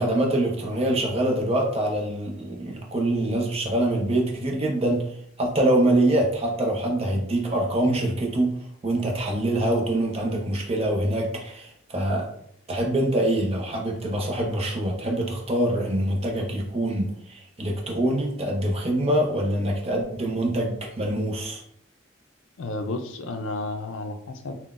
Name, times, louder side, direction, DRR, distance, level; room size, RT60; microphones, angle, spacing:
voice 1, 0.0-5.1 5.4-8.5 8.8-12.3 12.7-21.6, right 1 dB, 30° right, -1 dB, 0.6 m, -24 dB
voice 2, 22.6-24.5, left 2 dB, 90° left, 6 dB, 0.4 m, -32 dB
3.8 x 2.1 x 2.4 m, 0.68 s
head